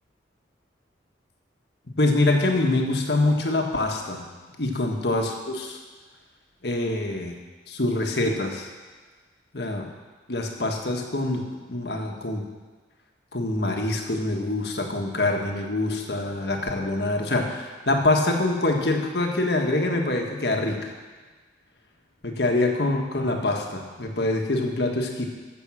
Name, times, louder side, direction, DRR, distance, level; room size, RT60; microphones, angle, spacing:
voice 1, 2.0-4.3 4.6-5.8 6.6-7.3 7.7-8.7 9.5-9.9 10.3-12.4 13.3-20.9 22.2-25.2, left 2 dB, 60° left, 2 dB, 1.6 m, -25 dB
14.5 x 7.3 x 6.3 m, 1.4 s
head